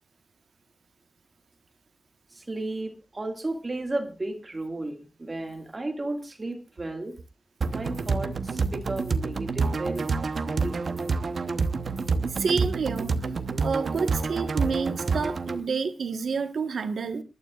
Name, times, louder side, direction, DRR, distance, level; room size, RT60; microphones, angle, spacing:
voice 1, 2.4-7.2 7.7-10.8, right 2 dB, 25° right, 2.1 m, -34 dB
sound 1, 7.6-15.6, right 4 dB, 55° right, 0.9 m, -28 dB
voice 2, 12.3-13.2 13.6-17.2, right 5 dB, 85° right, 1.3 m, -29 dB
27.0 x 12.0 x 2.4 m
wide cardioid pair, 170°, 0 cm